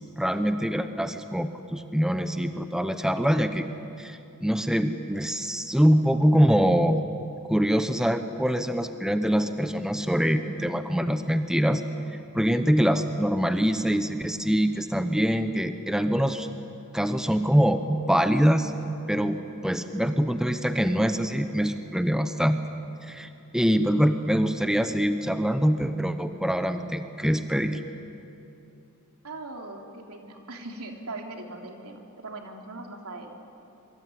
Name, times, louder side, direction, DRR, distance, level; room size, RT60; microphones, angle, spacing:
voice 1, 0.0-3.7 4.0-7.0 7.5-11.8 12.3-16.5 16.9-18.7 19.1-19.4 19.6-22.6 23.0-27.8, equal, 5° right, 8 dB, 0.9 m, -24 dB
voice 2, 29.2-33.4, right 2 dB, 75° right, 2 dB, 3.4 m, -40 dB
26.5 x 23.5 x 9.5 m, 2.8 s
head